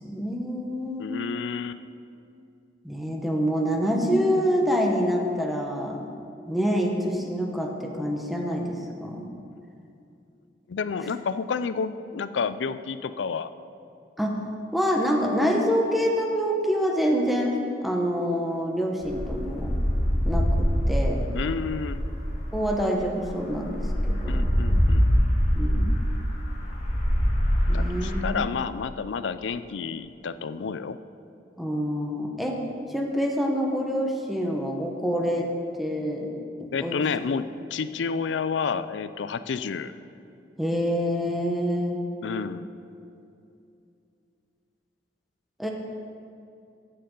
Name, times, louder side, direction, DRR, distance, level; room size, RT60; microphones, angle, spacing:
voice 1, 0.0-1.2 2.8-6.0 6.5-9.3 14.2-14.4 14.7-19.8 20.2-21.3 22.5-24.4 25.5-26.0 27.7-28.5 31.6-32.6 32.9-35.5 35.8-36.3 36.6-37.0 40.6-42.0 45.6-45.7, equal, ahead, 0 dB, 1.1 m, -26 dB
voice 2, 1.0-1.8 10.7-13.5 21.3-22.0 24.3-25.1 27.7-31.0 36.7-39.9 42.2-42.6, left 5 dB, 75° left, 13 dB, 0.4 m, -30 dB
sound 1, 19.0-28.2, equal, 40° left, 1.7 m, -24 dB
15.0 x 7.9 x 3.8 m, 2.6 s
head